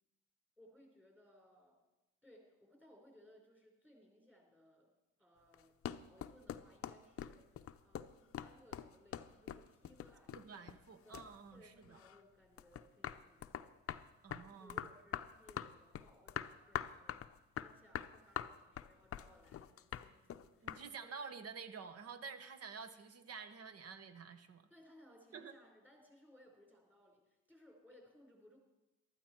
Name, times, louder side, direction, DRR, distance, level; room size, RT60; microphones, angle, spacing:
voice 1, 0.6-1.8 2.2-4.9 5.2-7.5 7.8-13.8 14.5-21.1 24.7-28.6, left 1 dB, 5° right, 0 dB, 4.6 m, -64 dB
sound 1, 5.5-10.9 11.1-12.2 12.6-20.8, left 10 dB, 50° left, 0.6 m, -44 dB
voice 2, 10.3-12.0 14.2-14.9 20.6-24.7 25.3-25.6, right 5 dB, 55° right, 9 dB, 1.1 m, -50 dB
14.5 x 12.5 x 4.5 m, 1.0 s
cardioid pair, 90°, 30 cm